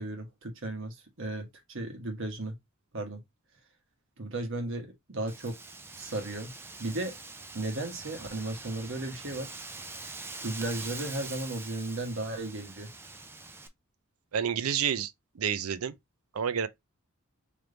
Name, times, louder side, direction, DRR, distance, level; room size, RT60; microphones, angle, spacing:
voice 1, 0.0-2.5 2.9-3.2 4.2-5.6 6.0-6.5 6.8-7.1 7.5-9.5 10.4-12.9, right 2 dB, 60° right, 1.3 m, -35 dB
Wind, 5.3-13.7, right 3 dB, 10° right, 0.4 m, -44 dB
voice 2, 14.3-15.9 16.3-16.7, right 8 dB, 85° right, 0.5 m, -29 dB
3.4 x 3.2 x 3.8 m
head